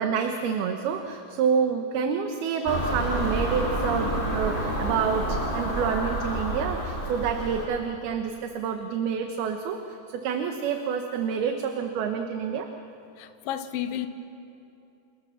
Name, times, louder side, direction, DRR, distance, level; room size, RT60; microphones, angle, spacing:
voice 1, 0.0-12.7, right 6 dB, 75° right, 5 dB, 3.1 m, -28 dB
Car passing by / Engine, 2.7-7.7, right 1 dB, 10° left, 5.2 m, -29 dB
voice 2, 13.2-14.1, left 11 dB, 70° left, 9 dB, 2.6 m, -31 dB
30.0 x 28.0 x 7.2 m, 2.8 s
omnidirectional pair, 4.6 m